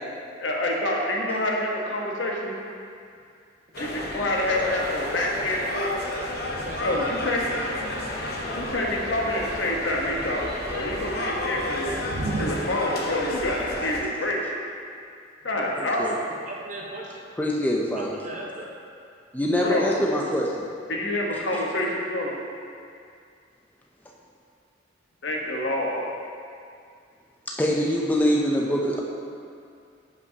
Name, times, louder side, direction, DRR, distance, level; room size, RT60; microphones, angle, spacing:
voice 1, 0.4-2.5 3.8-6.0 6.8-7.9 8.5-10.4 10.7-12.0 12.4-14.4 15.4-16.2 19.6-20.0 20.9-22.4 25.2-26.1, left 1 dB, 80° left, -1 dB, 1.0 m, -27 dB
sound 1, 3.7-14.0, left 1 dB, 55° left, 0.9 m, -32 dB
voice 2, 3.8-7.1 7.6-7.8 11.4-11.5 16.5-17.3 17.9-18.7, right 1 dB, 40° right, -2 dB, 0.9 m, -39 dB
Thunder / Rain, 6.4-12.5, right 3 dB, 60° right, 0.6 m, -38 dB
voice 3, 15.8-16.2 17.4-18.1 19.3-20.7 27.5-29.0, equal, 10° left, -2 dB, 0.5 m, -24 dB
10.5 x 5.4 x 2.8 m, 2.4 s
head